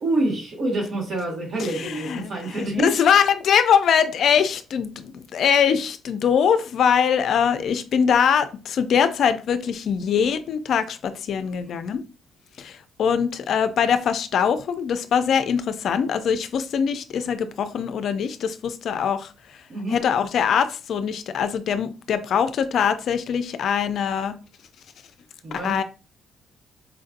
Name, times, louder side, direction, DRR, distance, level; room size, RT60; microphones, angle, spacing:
voice 1, 0.0-3.0 11.6-11.8 19.7-20.0 25.4-25.8, right 2 dB, 60° right, 1.8 m, -27 dB
voice 2, 1.6-12.0 12.6-19.3 19.9-24.4 25.5-25.8, left 7 dB, 65° left, 0.4 m, -22 dB
4.4 x 2.6 x 2.5 m
cardioid pair, 90°, 0 cm